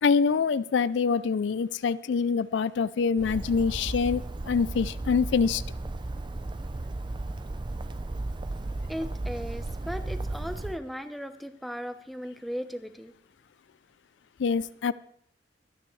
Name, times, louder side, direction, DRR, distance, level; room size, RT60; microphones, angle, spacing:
voice 1, 0.0-5.6 14.4-14.9, left 5 dB, 70° left, 17 dB, 0.4 m, -25 dB
Bird, 3.2-10.8, right 2 dB, 25° right, 0.5 m, -35 dB
voice 2, 8.9-13.1, equal, ahead, 8 dB, 0.8 m, -37 dB
22.5 x 9.6 x 3.2 m, 0.68 s
head